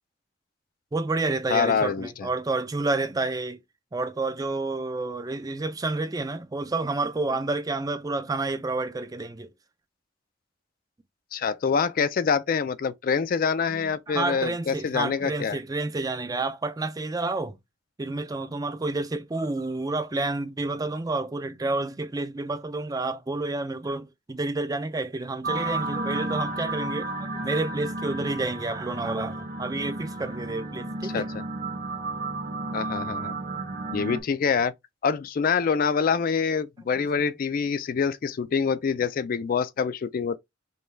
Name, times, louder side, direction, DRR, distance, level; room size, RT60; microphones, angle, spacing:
voice 1, 0.9-3.6 3.9-9.5 13.7-17.6 18.0-31.3 36.9-37.1, right 2 dB, 20° right, 0.4 m, -29 dB
voice 2, 1.5-2.3 11.3-15.6 31.1-31.4 32.7-33.3 33.9-34.7 35.0-40.4, left 6 dB, 50° left, 0.3 m, -25 dB
sound 1, 25.4-34.2, right 2 dB, 50° right, 1.0 m, -32 dB
5.3 x 2.2 x 3.2 m
head